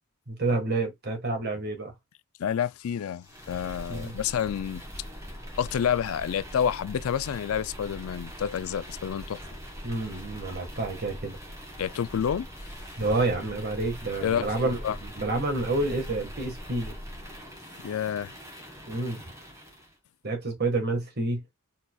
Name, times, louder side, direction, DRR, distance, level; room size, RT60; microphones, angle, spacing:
voice 1, 0.3-1.9 3.9-4.2 9.8-11.4 13.0-17.0 18.9-19.3 20.2-21.4, right 2 dB, 50° right, 1.6 m, -29 dB
voice 2, 2.4-4.8 5.6-9.4 11.8-12.5 14.2-15.0 17.8-18.3, left 8 dB, 80° left, 0.4 m, -29 dB
sound 1, 3.2-19.9, equal, 15° right, 1.6 m, -42 dB
4.3 x 3.9 x 2.3 m
head